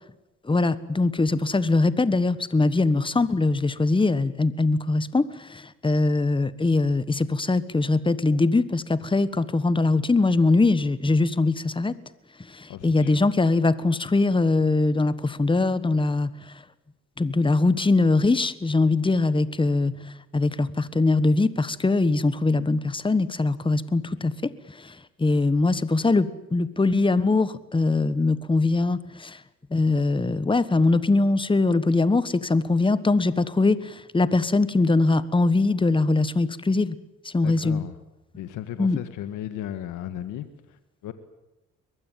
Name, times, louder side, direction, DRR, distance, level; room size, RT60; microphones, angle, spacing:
voice 1, 0.4-11.9 12.4-16.5 17.2-29.4 29.7-37.0 37.2-37.8 38.8-39.0, left 3 dB, 15° left, 16 dB, 1.4 m, -22 dB
voice 2, 12.7-13.2 37.4-38.0 38.3-41.1, left 11 dB, 90° left, 11 dB, 1.6 m, -35 dB
23.0 x 20.5 x 9.3 m, 0.97 s
cardioid pair, 90°, 30 cm